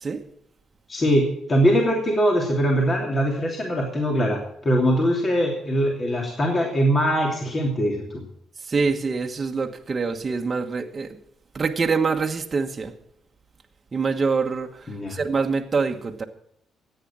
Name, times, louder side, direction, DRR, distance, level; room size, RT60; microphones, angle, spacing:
voice 1, 0.9-8.2 14.9-15.2, equal, 35° left, 0 dB, 3.0 m, -22 dB
voice 2, 8.7-11.2 11.5-12.9 13.9-16.2, right 4 dB, 35° right, 3 dB, 1.2 m, -25 dB
14.0 x 9.3 x 7.3 m, 0.73 s
cardioid pair, 90°, 0 cm